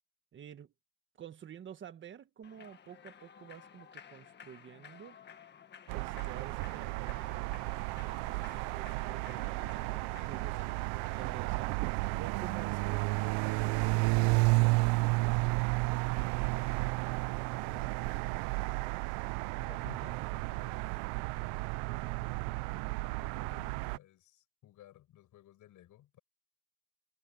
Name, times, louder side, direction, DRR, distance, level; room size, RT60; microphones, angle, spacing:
voice 1, 0.3-0.7 1.2-5.2 5.9-10.8 11.1-11.7 12.2-15.9, right 9 dB, 25° right, 1.7 m, -50 dB
Human voice / Clapping / Cheering, 2.4-12.1, left 7 dB, 20° left, 1.7 m, -55 dB
sound 1, 5.9-24.0, right 26 dB, 60° right, 0.7 m, -32 dB
voice 2, 17.6-18.9 19.6-20.9 21.7-26.2, left 13 dB, 40° left, 5.9 m, -57 dB
supercardioid pair, 145°, 47 cm